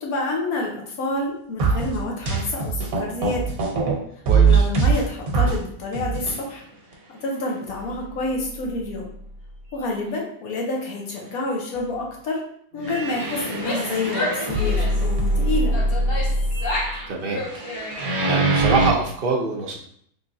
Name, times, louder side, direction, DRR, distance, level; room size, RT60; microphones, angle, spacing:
voice 1, 0.0-3.4 4.4-6.6 7.1-9.0 9.7-12.4 12.7-15.7, left 2 dB, 80° left, -1 dB, 1.3 m, -28 dB
sound 1, 1.6-3.9 4.3-5.6 5.9-6.4 6.9-7.0 7.7-7.8 8.3-8.4 12.8-18.9, right 3 dB, 75° right, 1.3 m, -22 dB
voice 2, 4.3-4.6 17.1-17.4 18.3-19.8, right 4 dB, 55° right, 0 dB, 0.6 m, -24 dB
Female speech woman speaking / Yell, 13.5-15.1 15.7-17.0 17.3-18.3, left 2 dB, 50° left, 0.8 m, -30 dB
3.6 x 3.1 x 2.6 m, 0.64 s
omnidirectional pair, 1.5 m